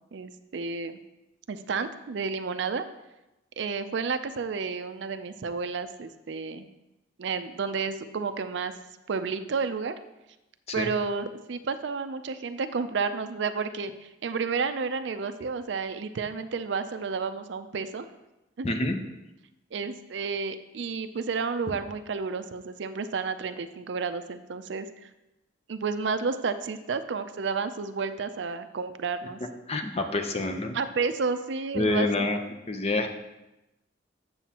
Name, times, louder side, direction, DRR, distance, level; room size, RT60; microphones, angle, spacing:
voice 1, 0.1-1.0 1.5-2.8 3.6-6.7 7.2-8.7 9.1-10.0 10.7-18.1 18.6-18.7 19.7-25.1 25.7-29.4 30.7-32.3, right 5 dB, 65° right, 11 dB, 0.4 m, -31 dB
voice 2, 18.6-19.0 29.7-30.8 31.7-32.4 32.7-33.1, left 2 dB, 30° left, 5 dB, 0.7 m, -27 dB
9.0 x 7.0 x 2.9 m, 0.97 s
head